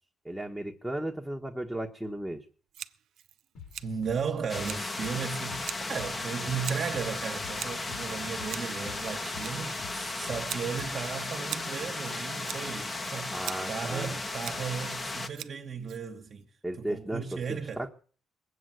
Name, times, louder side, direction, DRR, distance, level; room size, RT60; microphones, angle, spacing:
voice 1, 0.2-2.4 13.3-14.1 16.6-17.9, right 1 dB, ahead, 1.4 m, -35 dB
Scissors, 2.7-16.4, right 11 dB, 75° right, 0.6 m, -45 dB
sound 1, 3.5-11.2, left 7 dB, 65° left, 5.0 m, -49 dB
voice 2, 3.8-16.5 16.8-17.8, right 6 dB, 50° right, 1.4 m, -35 dB
sound 2, 4.5-15.3, left 2 dB, 30° left, 1.4 m, -35 dB
20.5 x 8.2 x 7.7 m
cardioid pair, 90°, 0 cm